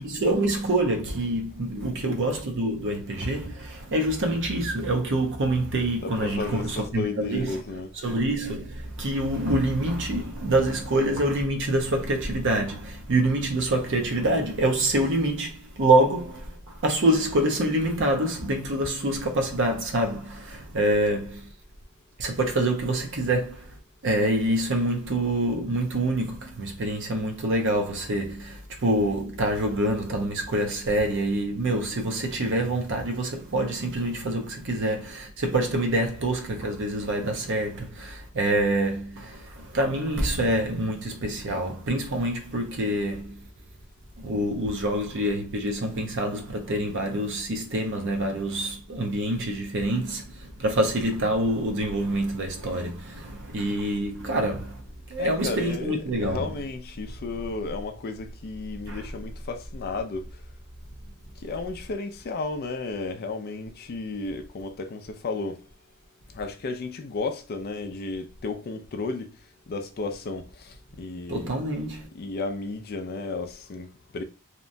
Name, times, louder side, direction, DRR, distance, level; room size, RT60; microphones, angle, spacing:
voice 1, 0.0-21.5 22.2-43.4 44.2-54.8 55.1-56.5 58.8-59.1 71.3-72.1, right 1 dB, 55° right, 0.6 m, -26 dB
voice 2, 6.0-7.9 55.2-60.4 61.4-65.6 66.3-71.6 72.1-74.2, left 3 dB, 45° left, 0.4 m, -33 dB
2.9 x 2.2 x 2.5 m
head